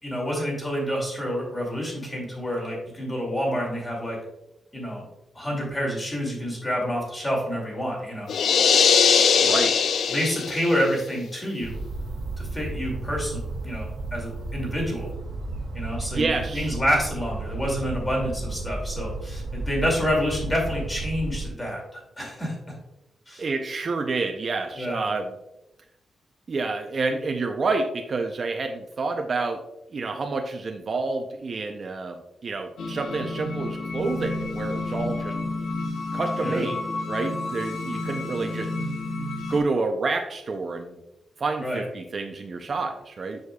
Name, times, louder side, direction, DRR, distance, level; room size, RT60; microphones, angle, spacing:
voice 1, 0.0-4.2 4.7-5.0 5.3-8.3 10.1-11.8 12.4-15.1 15.7-22.5 23.3-23.4 24.7-25.1 36.4-36.7 41.6-41.8, equal, 20° left, -2 dB, 2.2 m, -28 dB
sound 1, 8.3-10.8, left 6 dB, 60° left, 0.4 m, -20 dB
voice 2, 9.4-9.8 16.1-16.7 23.4-25.4 26.5-29.6 29.9-35.3 36.1-36.8 37.1-38.7 39.5-41.0 41.4-43.4, right 3 dB, 35° right, 4 dB, 0.4 m, -28 dB
sound 2, 11.6-21.5, right 2 dB, 75° right, 1.6 m, -33 dB
sound 3, 32.8-39.6, left 2 dB, 85° left, 1.0 m, -31 dB
7.1 x 6.4 x 2.2 m, 0.92 s
wide cardioid pair, 165°, 0 cm